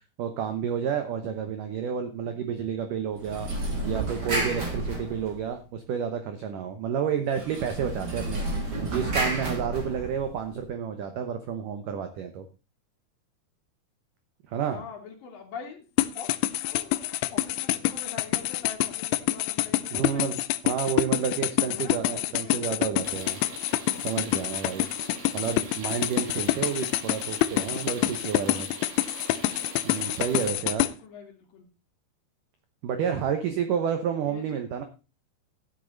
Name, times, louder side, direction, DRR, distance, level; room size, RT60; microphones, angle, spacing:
voice 1, 0.2-3.5 3.9-8.4 8.8-12.5 14.5-14.8 19.9-20.4 20.6-23.4 24.0-24.8 25.3-28.7 29.8-30.9 32.8-34.8, right 8 dB, 85° right, 7 dB, 1.8 m, -30 dB
sound 1, 3.2-5.7 7.3-10.5, right 2 dB, 30° right, 2.3 m, -31 dB
voice 2, 14.7-15.8 16.1-20.3 21.7-22.6 30.8-31.7 34.2-34.6, left 5 dB, 55° left, 3 dB, 3.5 m, -44 dB
sound 2, 16.0-30.9, left 16 dB, 85° left, 3.0 m, -27 dB
sound 3, 23.0-30.5, right 4 dB, 50° right, 3.8 m, -43 dB
14.0 x 8.5 x 4.0 m, 0.31 s
omnidirectional pair, 5.4 m